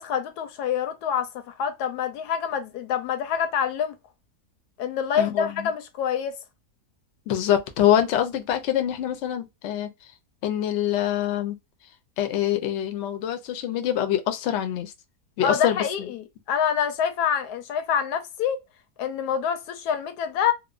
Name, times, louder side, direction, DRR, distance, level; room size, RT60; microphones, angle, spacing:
voice 1, 0.0-4.0 4.8-6.4 15.4-18.6 19.0-20.5, left 8 dB, 80° left, 1.1 m, -26 dB
voice 2, 5.2-5.7 7.3-9.9 10.4-11.6 12.2-14.9 15.4-15.8, left 11 dB, 65° left, 0.7 m, -25 dB
3.0 x 2.1 x 2.3 m
omnidirectional pair, 1.7 m